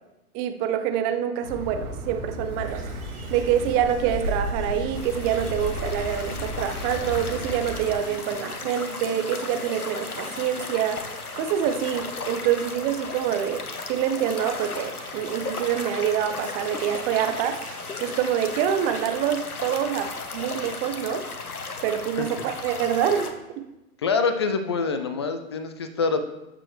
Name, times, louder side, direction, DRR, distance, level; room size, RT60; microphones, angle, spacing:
voice 1, 0.3-2.8 3.3-13.6 13.9-17.6 18.0-21.2 21.8-23.3 23.6-23.7, right 9 dB, 20° right, 7 dB, 0.6 m, -26 dB
Bird, 1.4-7.9, equal, 75° right, 2.5 m, -33 dB
sound 1, 2.6-13.9 14.2-19.1 19.6-20.0 20.4-20.5 21.5-21.6, right 4 dB, 50° right, 3.7 m, -46 dB
sound 2, 4.9-23.3, left 4 dB, 80° left, 1.0 m, -35 dB
voice 2, 24.0-26.2, left 4 dB, 20° left, 8 dB, 0.3 m, -25 dB
12.5 x 6.9 x 3.2 m, 0.97 s
figure-of-eight pair, 105°, 44 cm